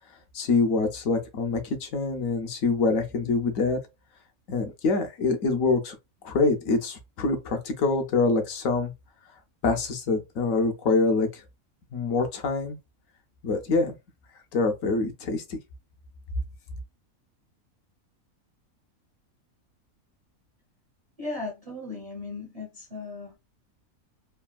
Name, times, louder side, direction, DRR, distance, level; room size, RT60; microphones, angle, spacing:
voice 1, 0.3-3.8 4.5-5.9 6.2-8.9 9.6-11.4 11.9-12.8 13.4-13.9 14.5-15.6, left 3 dB, 75° left, 1.1 m, -25 dB
voice 2, 21.2-23.4, left 2 dB, 35° right, 0.7 m, -36 dB
3.3 x 2.3 x 2.2 m
omnidirectional pair, 1.5 m